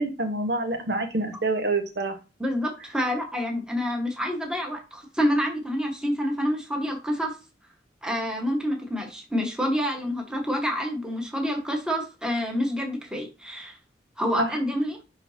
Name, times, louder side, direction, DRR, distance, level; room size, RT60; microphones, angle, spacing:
voice 1, 0.0-2.1 14.4-14.5, right 2 dB, 75° right, 5 dB, 1.3 m, -26 dB
voice 2, 2.4-7.3 8.0-13.8 14.2-15.0, equal, 5° right, 1 dB, 1.4 m, -27 dB
10.5 x 4.0 x 2.8 m, 0.30 s
head